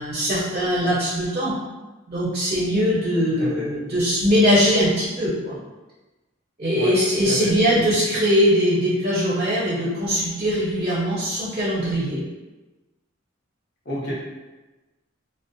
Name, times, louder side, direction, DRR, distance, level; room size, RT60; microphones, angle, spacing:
voice 1, 0.0-1.5 2.1-5.6 6.6-12.2, equal, 30° right, -8 dB, 0.6 m, -21 dB
voice 2, 7.4-8.2 13.9-14.1, equal, 55° left, -6 dB, 0.8 m, -31 dB
2.5 x 2.1 x 2.5 m, 1.2 s
head